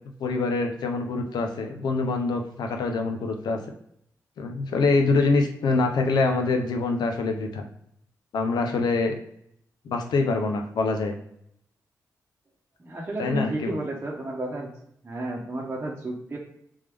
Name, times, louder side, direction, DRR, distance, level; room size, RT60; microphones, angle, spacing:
voice 1, 0.2-3.6 4.4-7.6 8.3-9.1 9.8-11.2 13.2-13.7, left 3 dB, 85° left, 4 dB, 0.7 m, -25 dB
voice 2, 12.8-14.7 15.0-16.4, right 1 dB, 30° right, -4 dB, 1.0 m, -32 dB
3.6 x 3.3 x 3.4 m, 0.73 s
cardioid pair, 60°, 7 cm